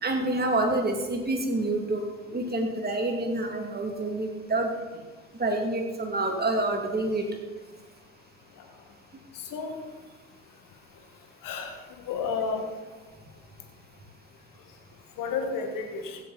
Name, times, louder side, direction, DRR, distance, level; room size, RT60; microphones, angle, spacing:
voice 1, 0.0-2.0 2.3-4.8 5.4-7.3, right 2 dB, 25° right, 2 dB, 2.7 m, -27 dB
voice 2, 11.4-11.7 12.1-12.6 15.2-16.2, left 5 dB, 65° left, 5 dB, 1.9 m, -31 dB
16.0 x 8.1 x 4.3 m, 1.3 s
hypercardioid pair, 55°, 35 cm